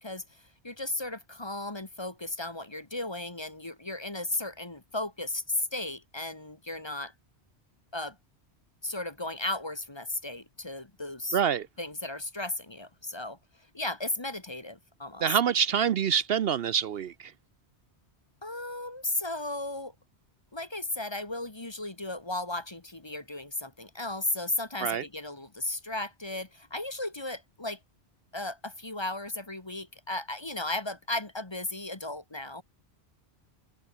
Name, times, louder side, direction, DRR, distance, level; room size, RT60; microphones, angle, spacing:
voice 1, 0.0-7.1 7.9-8.2 8.8-11.4 11.8-13.4 13.7-15.4 18.4-19.9 20.5-27.8 28.3-32.6, left 2 dB, 25° left, 1.5 m, -35 dB
voice 2, 11.3-11.7 15.2-17.3 24.8-25.0, right 8 dB, 65° right, 0.8 m, -26 dB
open air
omnidirectional pair, 1.1 m